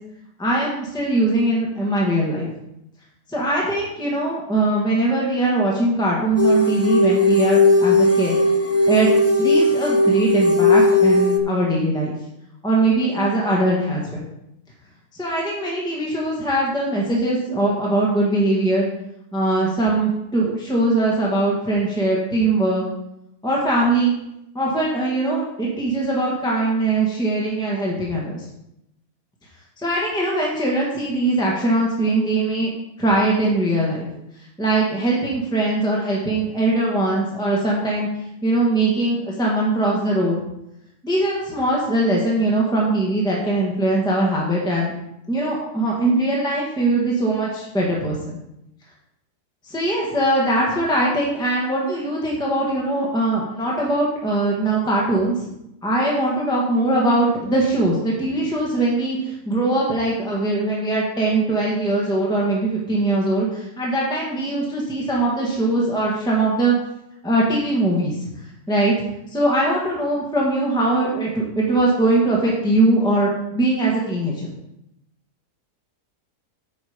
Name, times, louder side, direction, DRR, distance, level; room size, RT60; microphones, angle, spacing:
voice 1, 0.4-2.5 3.3-8.4 8.9-9.1 9.4-12.1 12.6-14.2 15.1-18.9 19.3-22.8 23.4-24.1 24.5-28.5 29.8-32.7 33.0-34.1 34.6-38.1 38.4-40.4 41.0-44.9 45.3-48.4 49.6-55.5 55.8-66.7 67.2-68.3 68.7-68.9 69.3-74.5, right 2 dB, 5° left, -4 dB, 1.5 m, -21 dB
sound 1, 6.4-11.4, left 2 dB, 25° left, 0.3 m, -17 dB
8.9 x 5.2 x 5.1 m, 0.83 s
omnidirectional pair, 1.6 m